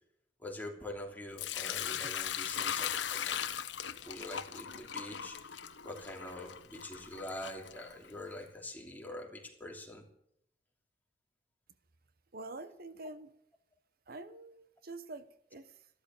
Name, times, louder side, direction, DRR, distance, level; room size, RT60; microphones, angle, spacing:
voice 1, 0.4-3.5 4.0-5.4 5.8-10.0, left 1 dB, 10° left, 1 dB, 3.1 m, -45 dB
Sink (filling or washing) / Liquid, 1.4-8.3, left 9 dB, 90° left, 1.0 m, -39 dB
voice 2, 12.3-13.3 14.1-15.9, right 2 dB, 55° right, 12 dB, 0.9 m, -46 dB
14.0 x 13.0 x 7.0 m, 0.72 s
head